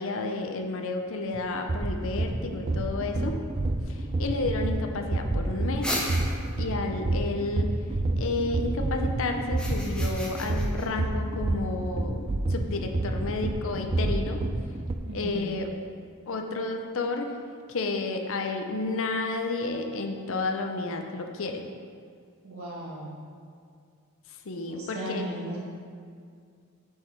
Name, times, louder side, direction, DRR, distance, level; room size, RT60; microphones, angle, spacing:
voice 1, 0.0-3.4 3.9-6.0 6.6-7.7 8.2-14.4 15.1-15.7 16.3-17.4 17.7-21.6 24.5-25.3, left 3 dB, 65° left, 4 dB, 0.6 m, -31 dB
sound 1, 1.3-14.9, right 2 dB, 25° right, 0.3 m, -29 dB
sound 2, 5.8-6.7 9.4-10.9, left 1 dB, 5° left, 0.8 m, -33 dB
voice 2, 15.0-15.4 22.4-23.1 24.6-25.6, right 1 dB, 70° right, -5 dB, 1.5 m, -36 dB
7.3 x 4.7 x 4.6 m, 2.2 s
head